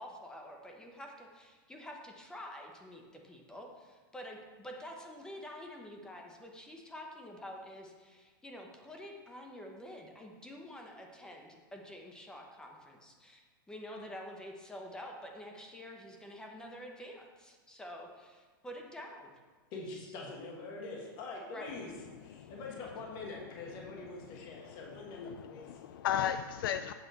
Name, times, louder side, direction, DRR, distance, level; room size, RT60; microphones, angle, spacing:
voice 1, 0.0-19.3 19.9-20.1 21.5-21.7, left 1 dB, 5° left, 1 dB, 0.7 m, -48 dB
voice 2, 19.7-21.9 22.2-25.8, left 3 dB, 35° left, -1 dB, 1.4 m, -44 dB
voice 3, 24.5-26.9, left 9 dB, 80° left, 10 dB, 0.4 m, -36 dB
8.0 x 6.0 x 4.0 m, 1.4 s
supercardioid pair, 155°, 12 cm